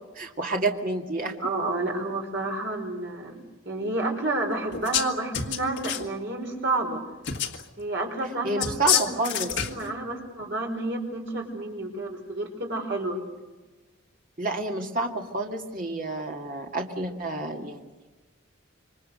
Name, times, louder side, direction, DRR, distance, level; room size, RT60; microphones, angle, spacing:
voice 1, 0.2-1.3 8.4-9.6 14.4-18.1, right 2 dB, 40° right, 1 dB, 2.3 m, -29 dB
voice 2, 1.4-3.4 3.6-7.0 7.8-9.0 9.7-13.2, right 2 dB, 60° right, 2 dB, 5.0 m, -30 dB
sound 1, 4.7-5.1 5.3-6.1 7.2-7.6 8.6-9.9, left 9 dB, 55° left, 1.8 m, -27 dB
27.0 x 24.0 x 6.7 m, 1.2 s
head